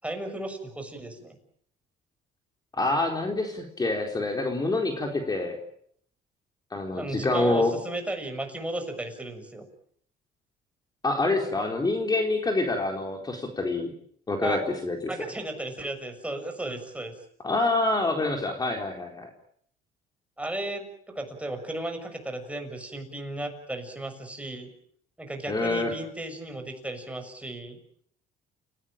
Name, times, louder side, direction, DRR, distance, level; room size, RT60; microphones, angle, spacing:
voice 1, 0.0-1.4 6.9-9.7 14.4-14.6 15.1-17.1 20.4-24.7 25.2-27.8, right 1 dB, 5° right, 5 dB, 6.7 m, -34 dB
voice 2, 2.7-5.6 6.7-7.7 11.0-13.9 14.3-15.0 17.4-19.3 25.5-25.9, left 2 dB, 25° left, 3 dB, 4.2 m, -26 dB
29.5 x 17.5 x 9.0 m, 0.64 s
cardioid pair, 110°, 17 cm